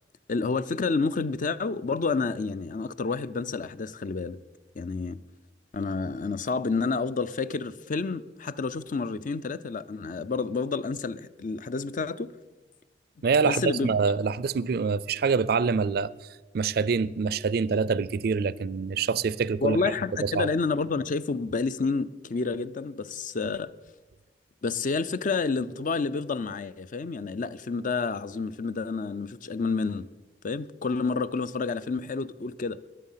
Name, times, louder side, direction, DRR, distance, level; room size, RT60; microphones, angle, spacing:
voice 1, 0.3-4.4 4.8-5.2 5.7-12.3 13.5-13.9 19.6-23.7 24.6-30.1 30.4-32.8, left 4 dB, 50° left, 0.5 m, -29 dB
voice 2, 13.2-16.1 16.5-19.8 20.2-20.5, right 5 dB, 60° right, 0.4 m, -25 dB
21.0 x 7.4 x 5.7 m
head